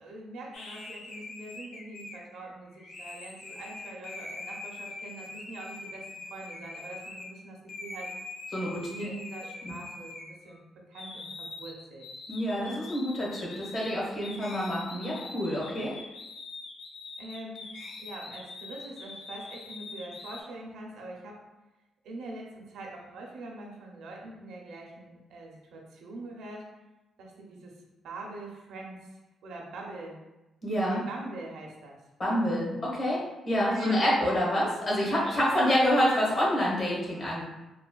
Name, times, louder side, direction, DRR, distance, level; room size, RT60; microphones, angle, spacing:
voice 1, 0.0-8.1 8.6-10.6 10.9-12.1 17.2-17.7 18.0-21.4 22.0-26.7 27.2-27.8 28.0-29.0 29.4-30.2 30.8-32.0 32.3-32.7 33.7-34.2 35.1-35.7, right 2 dB, 85° right, -1 dB, 0.6 m, -43 dB
sound 1, 0.5-7.3 7.7-10.6 10.9-20.4, left 3 dB, 70° left, 0.4 m, -43 dB
voice 2, 12.3-15.9 30.6-31.0 32.2-37.4, equal, 45° left, -6 dB, 1.1 m, -27 dB
3.2 x 2.1 x 2.2 m, 1.0 s
cardioid pair, 90°, 0 cm